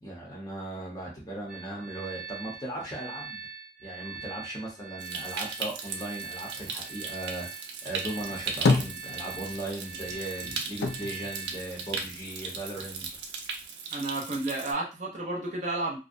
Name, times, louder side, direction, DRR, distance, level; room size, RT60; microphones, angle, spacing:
voice 1, 0.0-3.4 3.8-13.1, right 1 dB, 20° left, -3 dB, 0.7 m, -38 dB
sound 1, 1.5-11.9, right 6 dB, 5° right, 0.4 m, -42 dB
Stream, 5.0-14.7, right 5 dB, 80° right, 0.5 m, -38 dB
sound 2, 8.2-9.7 10.0-12.4 12.7-13.6, left 3 dB, 75° left, 0.4 m, -30 dB
voice 2, 13.9-16.0, right 2 dB, 40° right, -2 dB, 0.6 m, -31 dB
2.5 x 2.1 x 2.5 m, 0.30 s
head